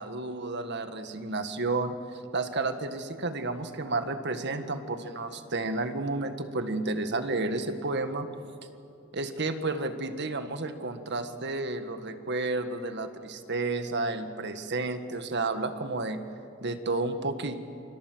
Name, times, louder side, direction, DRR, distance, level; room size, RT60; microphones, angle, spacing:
voice 1, 0.0-8.3 9.1-16.2 16.6-17.6, right 2 dB, 55° right, 8 dB, 1.8 m, -31 dB
28.0 x 26.5 x 8.0 m, 2.6 s
head